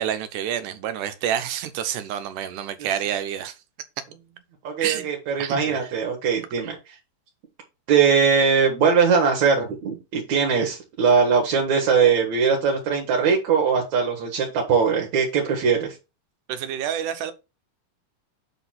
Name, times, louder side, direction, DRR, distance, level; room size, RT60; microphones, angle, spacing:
voice 1, 0.0-3.6 4.8-5.1 5.4-5.9 6.4-6.7 16.5-17.3, right 9 dB, 85° right, 2.5 m, -28 dB
voice 2, 4.6-6.8 7.9-15.9, right 6 dB, 65° right, 2.8 m, -21 dB
7.5 x 4.0 x 5.8 m
omnidirectional pair, 3.5 m